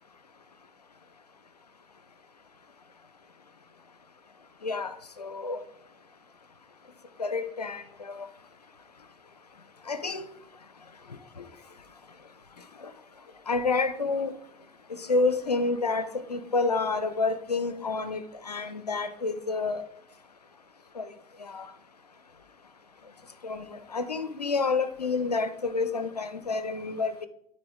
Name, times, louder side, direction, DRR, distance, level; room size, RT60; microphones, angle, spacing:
voice 1, 4.6-5.6 7.2-8.3 9.9-10.3 11.4-11.5 13.5-14.3 14.9-19.8 21.0-21.1 21.4-21.7 23.4-27.3, left 3 dB, 90° left, 0.6 m, -29 dB
9.6 x 3.9 x 4.9 m
figure-of-eight pair, 70°, 20 cm